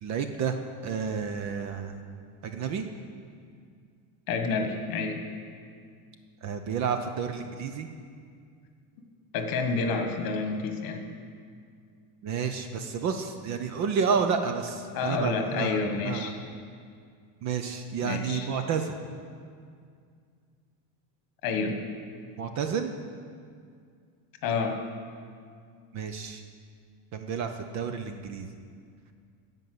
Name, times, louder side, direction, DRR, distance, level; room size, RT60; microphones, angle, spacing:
voice 1, 0.0-0.6 0.8-2.0 2.4-2.8 6.4-7.9 12.2-16.3 17.4-18.9 22.4-22.9 25.9-26.4 27.1-28.5, right 6 dB, 35° right, 7 dB, 0.5 m, -30 dB
voice 2, 4.3-5.2 9.3-11.1 14.9-16.3 18.0-18.5 21.4-21.8 24.4-24.8, left 4 dB, 45° left, 5 dB, 1.4 m, -29 dB
13.5 x 5.4 x 7.8 m, 2.2 s
cardioid pair, 160°, 47 cm